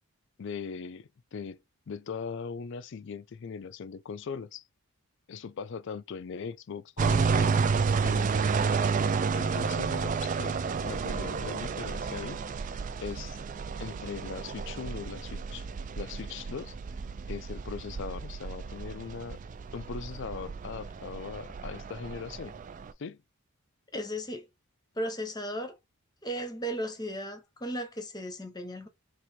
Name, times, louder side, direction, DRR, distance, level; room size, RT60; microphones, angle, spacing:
voice 1, 0.4-1.6 1.9-4.6 5.3-8.3 9.3-12.4 13.0-13.4 13.8-15.7 16.0-16.8 17.3-19.4 19.7-22.6 23.0-23.2, left 6 dB, 55° left, 0.4 m, -40 dB
sound 1, 7.0-22.9, right 5 dB, 35° right, 0.3 m, -31 dB
voice 2, 23.9-24.5 25.0-25.8 26.2-28.9, equal, 20° left, 0.8 m, -35 dB
4.5 x 2.6 x 4.2 m
head